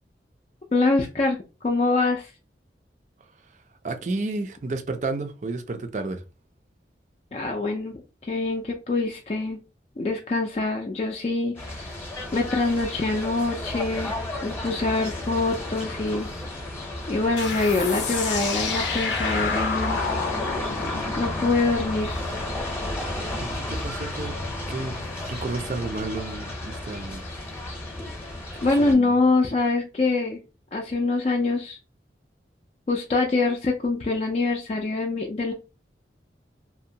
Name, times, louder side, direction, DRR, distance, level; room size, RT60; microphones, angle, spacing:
voice 1, 0.7-1.4 1.6-2.3 7.3-9.6 10.0-11.8 12.3-14.1 14.4-16.3 17.1-20.0 21.2-22.2 28.6-30.4 30.7-31.8 32.9-35.5, left 3 dB, 35° left, 0.4 m, -24 dB
voice 2, 3.8-6.2 23.4-24.4 24.7-27.2 28.8-29.2, right 3 dB, 45° right, 0.4 m, -31 dB
sound 1, 11.6-28.9, left 1 dB, 15° left, 0.7 m, -32 dB
sound 2, 17.4-22.6, left 5 dB, 90° left, 0.6 m, -30 dB
2.7 x 2.1 x 2.7 m
head